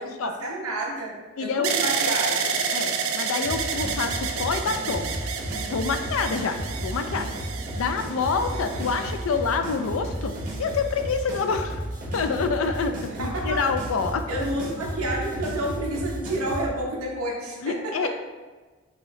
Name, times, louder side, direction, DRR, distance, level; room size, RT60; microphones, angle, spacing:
voice 1, 0.0-2.5 8.5-9.1 13.2-13.6 14.3-18.1, right 1 dB, 90° right, -1 dB, 1.0 m, -30 dB
voice 2, 1.4-1.7 2.7-5.1 5.7-7.3 7.8-10.3 10.6-11.8 12.1-14.5 17.6-18.1, left 5 dB, 70° left, 8 dB, 0.4 m, -27 dB
sound 1, 1.6-9.6 10.4-11.0, right 6 dB, 70° right, 0.4 m, -30 dB
sound 2, 3.4-16.7, right 1 dB, 40° right, 1.1 m, -33 dB
5.6 x 2.7 x 3.1 m, 1.3 s
head